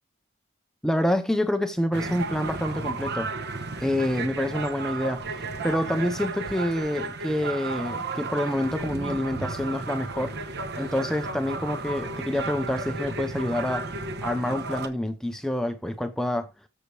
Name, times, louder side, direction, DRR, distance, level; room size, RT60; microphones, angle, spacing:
voice 1, 0.8-3.3 3.8-10.3 10.7-13.9 14.2-16.5, left 1 dB, ahead, 0.6 m, -27 dB
sound 1, 1.9-14.9, right 3 dB, 50° right, 1.0 m, -33 dB
13.5 x 5.2 x 3.3 m
head